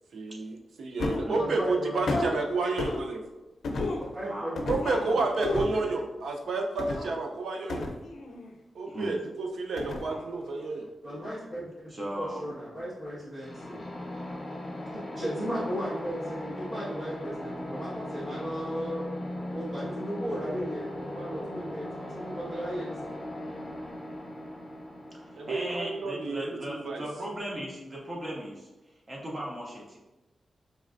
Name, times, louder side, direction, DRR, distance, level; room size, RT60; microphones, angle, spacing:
voice 1, 0.1-3.2 4.7-7.9 8.7-10.9 25.4-27.0, right 3 dB, 80° right, 2 dB, 0.5 m, -30 dB
sound 1, 1.0-1.4 2.1-2.3 2.8-3.0 3.6-4.1 4.6-5.1 5.4-5.8 6.8-7.1 7.7-8.5 9.8-10.2 10.6-10.7, left 2 dB, 80° left, 0.5 m, -31 dB
voice 2, 1.3-2.2 4.0-5.9 11.0-11.7 12.1-13.8 14.9-19.1 19.5-23.1, equal, 60° right, -11 dB, 1.3 m, -36 dB
voice 3, 11.9-12.4 25.2-28.7 29.1-30.0, right 1 dB, 30° right, -3 dB, 0.7 m, -37 dB
sound 2, 13.4-27.1, left 1 dB, 35° left, 0.8 m, -39 dB
4.2 x 3.1 x 2.5 m, 1.1 s
wide cardioid pair, 130°, 0 cm